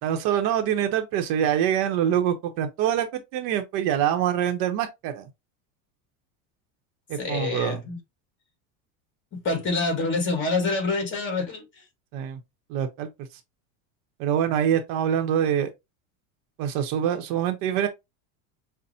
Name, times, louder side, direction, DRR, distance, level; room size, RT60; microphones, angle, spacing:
voice 1, 0.0-5.3 7.1-7.8 12.1-12.4 12.7-13.1 14.2-15.7 16.6-17.9, right 9 dB, 60° right, 0.8 m, -25 dB
voice 2, 7.2-8.0 9.3-11.8, left 3 dB, 30° left, 1.7 m, -27 dB
5.4 x 2.1 x 2.7 m
supercardioid pair, 125°, 40 cm